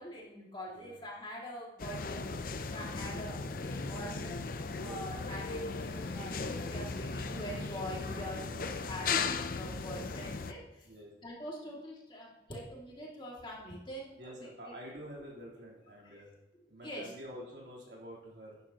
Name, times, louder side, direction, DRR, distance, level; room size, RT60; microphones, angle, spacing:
voice 1, 0.0-5.8 6.1-10.9 11.2-14.7 16.0-16.3 16.8-17.1, equal, 30° left, -3 dB, 2.4 m, -45 dB
sound 1, 1.8-10.5, left 4 dB, 50° left, 0.6 m, -37 dB
voice 2, 3.1-3.5 4.7-5.0 7.5-7.7 8.5-8.8 9.9-10.1 10.8-11.1 14.2-16.3 16.7-18.6, equal, 75° right, -4 dB, 3.6 m, -48 dB
sound 2, 3.6-4.5 5.0-5.1 5.4-5.5 5.7-8.0 8.3-9.3, left 1 dB, 70° left, 1.1 m, -45 dB
13.0 x 9.6 x 3.0 m, 1.0 s
head